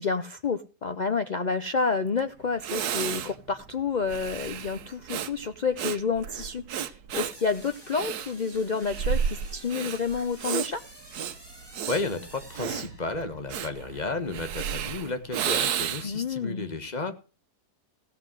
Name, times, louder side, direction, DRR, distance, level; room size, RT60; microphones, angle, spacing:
voice 1, 0.0-10.8 16.0-16.7, left 5 dB, 90° left, 9 dB, 0.4 m, -29 dB
Breathing, 2.2-2.3 2.6-16.2, right 8 dB, 70° right, 1.3 m, -32 dB
sound 1, 7.3-13.4, equal, 15° right, 3.7 m, -50 dB
voice 2, 11.9-17.2, left 3 dB, 30° left, 8 dB, 1.2 m, -33 dB
16.0 x 5.8 x 7.5 m, 0.35 s
omnidirectional pair, 1.7 m